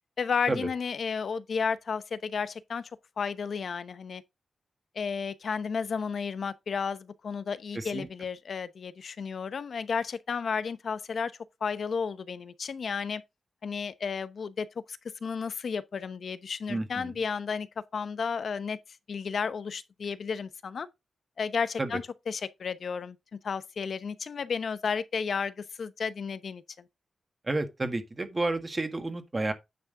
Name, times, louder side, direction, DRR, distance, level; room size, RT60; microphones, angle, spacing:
voice 1, 0.2-2.9 3.2-4.2 4.9-11.3 11.6-13.2 13.6-17.7 17.9-18.8 19.1-20.9 21.4-23.2 23.4-26.9, left 6 dB, 65° left, 0.9 m, -32 dB
voice 2, 7.7-8.1 16.7-17.1 21.8-21.9 27.5-29.5, right 2 dB, 30° right, 1.7 m, -31 dB
9.7 x 5.9 x 3.8 m
wide cardioid pair, 100°, 0 cm